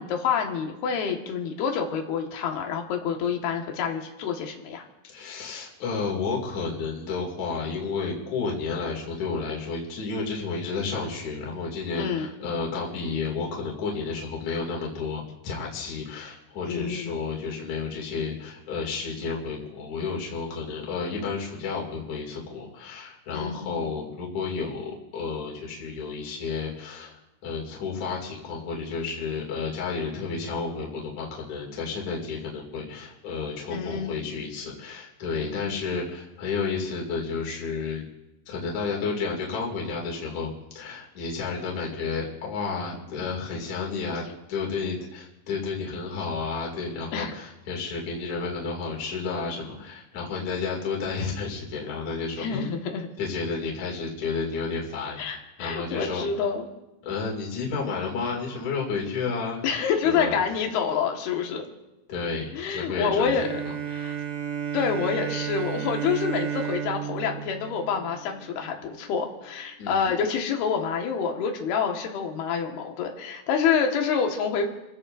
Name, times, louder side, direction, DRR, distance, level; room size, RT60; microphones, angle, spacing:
voice 1, 0.0-4.8 11.9-12.3 16.7-17.2 23.3-23.9 33.7-34.4 35.4-35.9 44.1-44.2 47.1-47.3 52.4-53.1 55.2-56.7 59.6-61.7 62.5-63.5 63.9-64.2 64.7-74.7, left 6 dB, 75° left, 2 dB, 3.6 m, -27 dB
voice 2, 5.1-38.1 38.5-40.5 40.8-52.7 53.2-56.2 57.0-59.6 60.0-60.3 62.1-63.5 69.8-70.1, left 4 dB, 50° left, -3 dB, 3.7 m, -31 dB
Bowed string instrument, 63.3-68.8, right 9 dB, 65° right, 2.4 m, -33 dB
30.0 x 16.5 x 2.6 m, 1.0 s
omnidirectional pair, 4.6 m